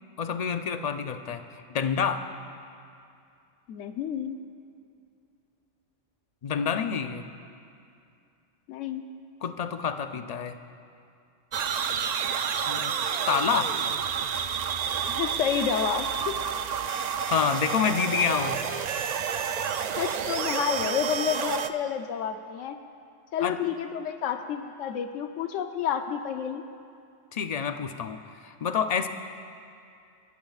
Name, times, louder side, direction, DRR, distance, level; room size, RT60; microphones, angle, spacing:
voice 1, 0.2-2.3 6.4-7.2 9.4-10.6 12.7-12.9 13.3-13.8 17.2-18.6 23.4-23.6 27.3-29.1, left 6 dB, 50° left, 8 dB, 0.5 m, -28 dB
voice 2, 3.7-4.4 8.7-9.1 15.1-16.4 20.0-22.8 23.3-26.6, left 8 dB, 80° left, 7 dB, 1.0 m, -30 dB
sound 1, 11.5-21.7, right 7 dB, 85° right, 0.3 m, -29 dB
29.5 x 13.0 x 2.4 m, 2.4 s
omnidirectional pair, 1.3 m